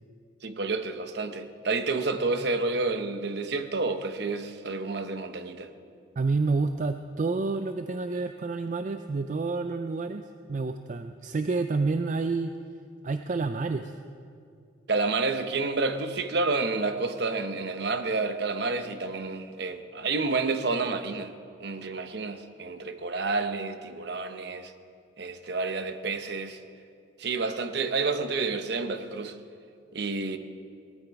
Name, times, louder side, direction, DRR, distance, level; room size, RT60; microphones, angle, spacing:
voice 1, 0.4-5.7 14.9-21.3 21.6-24.7 25.2-26.6 27.2-29.4 29.9-30.4, right 3 dB, 60° right, 8 dB, 0.8 m, -29 dB
voice 2, 6.2-10.2 10.5-12.5 13.0-14.0, right 3 dB, 40° right, 8 dB, 0.4 m, -29 dB
19.0 x 12.5 x 4.7 m, 2.3 s
head